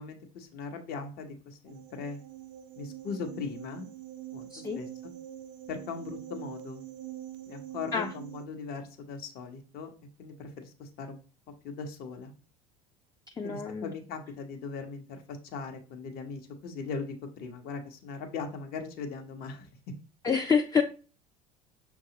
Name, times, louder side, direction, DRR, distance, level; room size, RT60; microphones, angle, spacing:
voice 1, 0.0-2.2 2.8-3.9 4.3-4.9 5.7-6.8 7.5-9.9 10.2-11.2 11.6-12.3 13.4-19.7, left 4 dB, 55° left, 5 dB, 0.9 m, -39 dB
sound 1, 1.7-8.4, right 13 dB, 75° right, 0.4 m, -44 dB
voice 2, 13.4-13.9 20.2-20.8, left 6 dB, 20° left, 5 dB, 0.3 m, -27 dB
5.7 x 2.3 x 2.8 m, 0.36 s
supercardioid pair, 90°, 19 cm